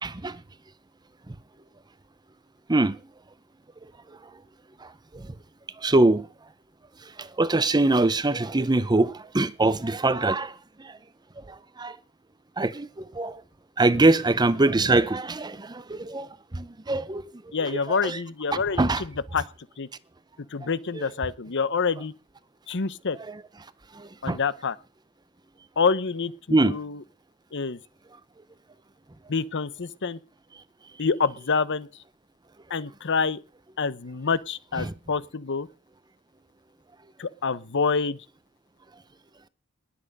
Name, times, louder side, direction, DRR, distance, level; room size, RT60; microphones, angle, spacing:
voice 1, 0.0-0.4 1.3-1.4 2.7-3.0 3.8-4.2 4.8-5.4 5.8-6.3 7.0-11.0 11.4-12.0 12.6-13.4 13.8-18.2 18.5-19.0 20.6-20.7 20.9-21.1 23.3-23.4 23.9-24.4 26.5-26.8 34.8-34.9, right 2 dB, 20° right, 0.7 m, -24 dB
voice 2, 17.5-18.8 19.3-19.5 19.8-19.9 20.5-22.1 22.7-23.2 24.2-24.7 25.8-26.3 26.6-27.0 27.5-27.8 29.3-30.2 31.0-31.9 32.7-33.4 33.8-35.7 37.2-38.2, left 5 dB, 55° left, 0.8 m, -26 dB
20.0 x 8.6 x 5.3 m
head